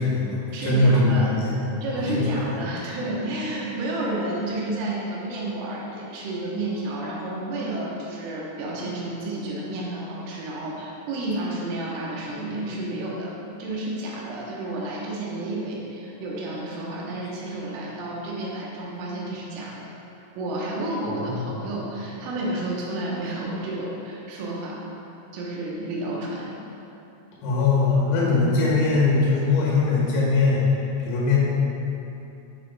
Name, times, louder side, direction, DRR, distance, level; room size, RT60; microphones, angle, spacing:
voice 1, 0.0-1.6 2.0-2.6 21.2-21.4 27.4-30.6 31.0-31.4, left 3 dB, 90° left, -6 dB, 4.2 m, -21 dB
voice 2, 0.5-1.3 1.8-13.3 13.6-19.9 20.4-24.8 25.3-26.6, right 1 dB, 80° right, -4 dB, 3.4 m, -31 dB
9.7 x 6.5 x 2.2 m, 2.9 s
omnidirectional pair, 5.8 m